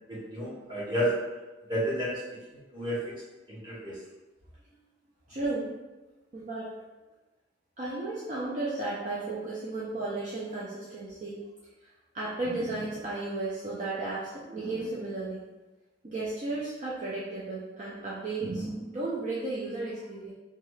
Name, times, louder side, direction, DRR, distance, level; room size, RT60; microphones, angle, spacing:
voice 1, 0.1-1.1 1.7-2.2 2.5-3.0 3.5-4.0, equal, 25° right, -9 dB, 1.1 m, -31 dB
voice 2, 5.3-5.7 6.3-6.7 7.8-11.4 12.1-15.4 16.0-20.3, right 2 dB, 40° right, -7 dB, 0.5 m, -34 dB
2.9 x 2.3 x 3.1 m, 1.1 s
head